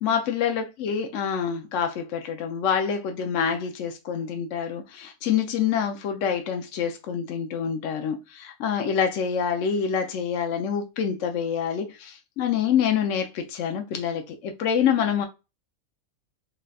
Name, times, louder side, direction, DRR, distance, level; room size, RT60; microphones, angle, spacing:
voice 1, 0.0-15.3, left 7 dB, 70° left, 0.9 m, -26 dB
3.8 x 3.3 x 2.3 m
omnidirectional pair, 1.5 m